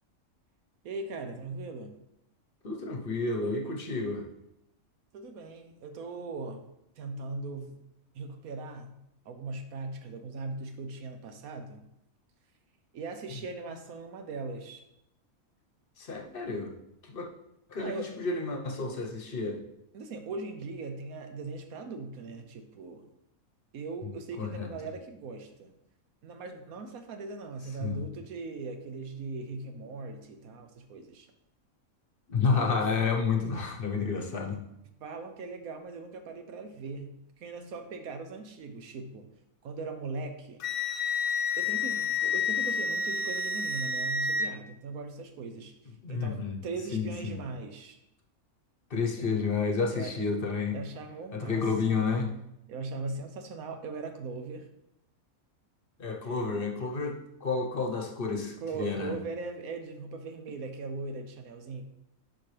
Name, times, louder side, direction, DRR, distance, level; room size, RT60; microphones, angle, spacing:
voice 1, 0.8-1.9 5.1-6.7 7.0-7.8 8.1-8.9 9.2-11.9 12.9-14.8 17.8-18.1 19.9-23.0 23.7-25.7 26.2-31.3 32.5-32.7 35.0-39.3 39.6-40.6 41.6-45.7 46.1-48.0 49.9-50.1 50.7-52.1 52.7-54.7 58.6-61.8, right 3 dB, 75° right, 6 dB, 1.2 m, -39 dB
voice 2, 2.6-4.3 16.0-16.7 17.1-17.3 17.7-19.6 24.4-24.7 27.8-28.0 32.3-34.6 46.0-46.6 46.9-47.4 48.9-50.8 51.3-52.3 56.0-59.2, left 4 dB, 45° left, 3 dB, 1.0 m, -30 dB
Wind instrument woodwind instrument, 40.6-44.5, left 4 dB, 75° left, 1.1 m, -29 dB
11.0 x 4.5 x 3.3 m, 0.84 s
omnidirectional pair, 1.5 m